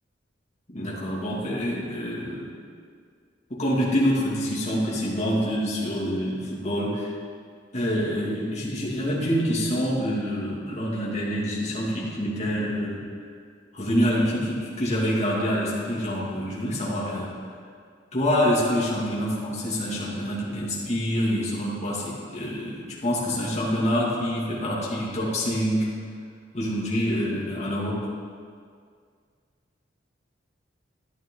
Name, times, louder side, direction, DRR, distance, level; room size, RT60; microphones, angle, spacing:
voice 1, 0.7-2.5 3.5-7.1 7.7-13.1 13.7-17.3 18.1-25.9 26.5-28.0, equal, 40° left, -6 dB, 2.5 m, -26 dB
13.0 x 11.0 x 3.9 m, 2.1 s
head